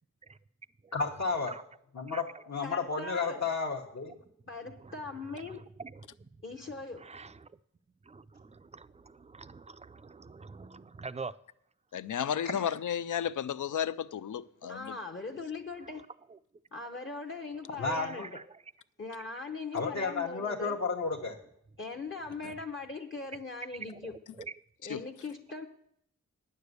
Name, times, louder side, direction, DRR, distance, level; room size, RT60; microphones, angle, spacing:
voice 1, 0.9-1.5 1.9-4.2 12.4-12.5 17.8-18.3 19.7-21.4, left 4 dB, 60° left, 1.1 m, -32 dB
voice 2, 2.1-2.4 4.8-6.4 6.9-7.6 8.0-11.4 16.3-16.4 17.9-18.6 22.4-22.6 23.9-24.5, right 4 dB, 20° right, 0.3 m, -46 dB
voice 3, 2.6-3.5 4.5-5.7 6.4-7.1 14.7-16.0 16.7-18.4 19.0-20.8 21.8-24.1 24.8-25.7, left 3 dB, 40° left, 0.8 m, -40 dB
voice 4, 11.9-15.0 24.9-25.0, left 9 dB, 75° left, 0.5 m, -33 dB
9.7 x 6.7 x 8.1 m
wide cardioid pair, 110°, 31 cm